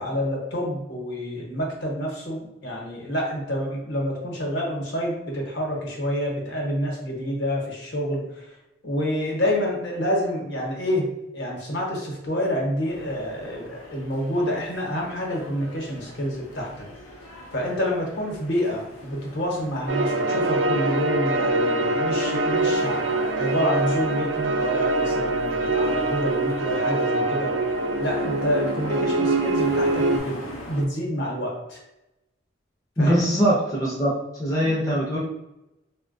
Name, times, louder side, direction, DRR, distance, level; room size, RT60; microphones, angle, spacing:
voice 1, 0.0-8.5 8.8-11.1 11.3-16.9 17.5-27.5 28.0-30.4 30.7-31.8 33.0-33.2, equal, 60° left, -1 dB, 0.8 m, -28 dB
sound 1, 12.9-30.8, left 1 dB, 90° left, 0.6 m, -42 dB
sound 2, 19.9-30.2, right 2 dB, 60° right, 0.3 m, -24 dB
voice 2, 33.0-35.2, equal, 15° left, -4 dB, 0.5 m, -22 dB
3.8 x 2.1 x 2.5 m, 0.91 s
head